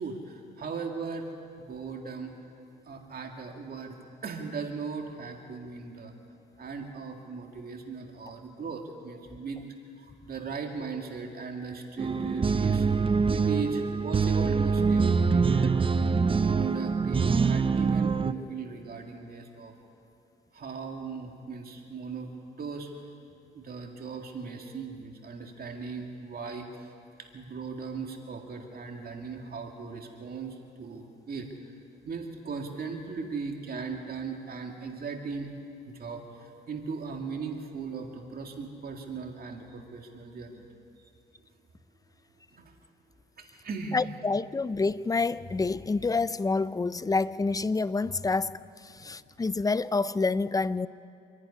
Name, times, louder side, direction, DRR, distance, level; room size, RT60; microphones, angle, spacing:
voice 1, 0.0-2.5 2.9-3.9 4.2-6.1 6.6-9.6 10.0-12.9 13.3-16.0 16.5-19.7 20.5-22.3 22.6-22.9 23.5-26.9 27.2-31.5 32.1-35.5 35.9-40.7 41.0-41.1 42.5-42.7 43.4-44.1 49.0-49.2, right 5 dB, 50° right, 3 dB, 2.2 m, -38 dB
sound 1, 12.0-18.3, right 5 dB, 25° right, 0.6 m, -25 dB
voice 2, 43.9-48.5 49.0-50.9, left 3 dB, 20° left, 17 dB, 0.5 m, -27 dB
26.0 x 11.0 x 9.9 m, 2.5 s
cardioid pair, 90°, 20 cm